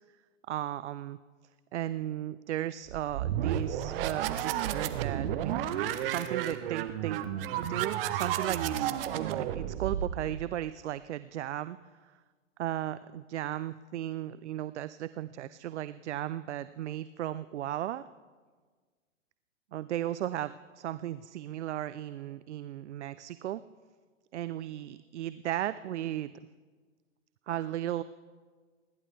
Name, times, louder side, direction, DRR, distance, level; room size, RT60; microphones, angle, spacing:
voice 1, 0.5-1.2 1.7-5.5 6.0-7.2 7.6-11.8 12.6-18.1 19.7-23.6 24.3-26.3 27.5-28.0, right 12 dB, 65° right, 15 dB, 0.5 m, -35 dB
sound 1, 2.9-10.5, right 10 dB, 45° right, 1.0 m, -32 dB
29.5 x 11.0 x 3.4 m, 1.5 s
hypercardioid pair, 115°, 38 cm